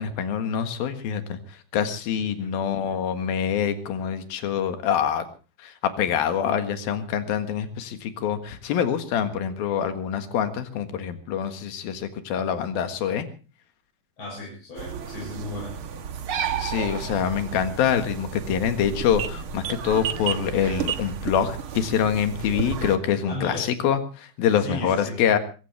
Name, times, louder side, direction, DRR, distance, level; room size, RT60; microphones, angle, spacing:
voice 1, 0.0-1.4 1.7-5.3 5.6-13.3 16.6-25.4, left 8 dB, 80° left, 9 dB, 3.5 m, -25 dB
voice 2, 2.2-2.5 14.2-15.7 23.3-23.7 24.6-25.2, left 2 dB, 30° left, -2 dB, 6.7 m, -35 dB
sound 1, 14.8-23.0, right 8 dB, 60° right, 1.4 m, -32 dB
24.0 x 16.0 x 3.4 m, 0.35 s
omnidirectional pair, 4.2 m